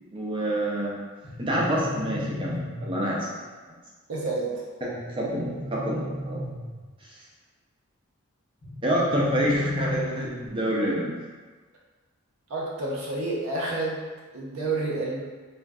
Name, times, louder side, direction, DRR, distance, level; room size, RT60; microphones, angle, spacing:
voice 1, 0.1-1.0 1.4-3.3 5.2-6.4 8.8-11.1, right 1 dB, 25° right, -4 dB, 0.5 m, -27 dB
sound 1, 1.2-3.2 4.9-7.0 8.6-10.6, left 2 dB, 80° left, 0.9 m, -34 dB
voice 2, 4.1-4.5 12.5-14.0 14.3-15.2, right 2 dB, 70° right, -4 dB, 0.6 m, -29 dB
3.5 x 2.5 x 2.3 m, 1.4 s
head